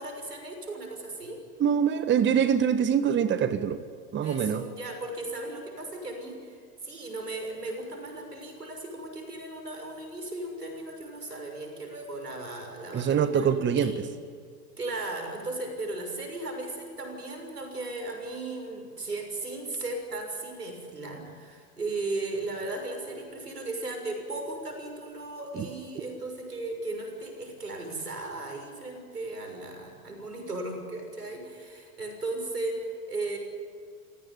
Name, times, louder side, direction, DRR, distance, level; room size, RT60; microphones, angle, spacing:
voice 1, 0.0-1.4 4.2-13.9 14.8-33.4, right 2 dB, 90° right, 4 dB, 6.3 m, -36 dB
voice 2, 1.6-3.8 4.1-4.6 12.9-14.0 25.6-25.7, right 8 dB, 25° right, 11 dB, 1.4 m, -24 dB
28.5 x 17.0 x 9.8 m, 2.1 s
figure-of-eight pair, 90°, 46 cm